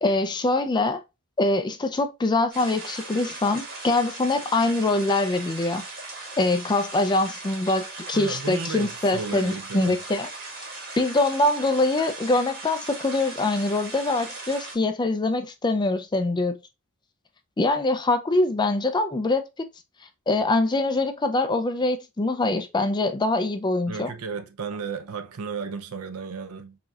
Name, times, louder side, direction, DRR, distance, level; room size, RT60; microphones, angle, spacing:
voice 1, 0.0-1.0 1.4-5.8 6.4-10.3 11.0-16.6 17.6-19.7 20.3-24.1, left 2 dB, 20° left, 0.4 m, -24 dB
sound 1, 2.5-14.7, right 2 dB, 45° right, 1.4 m, -38 dB
voice 2, 8.1-10.0 23.9-26.8, right 4 dB, 75° right, 0.6 m, -34 dB
4.9 x 2.7 x 2.4 m
head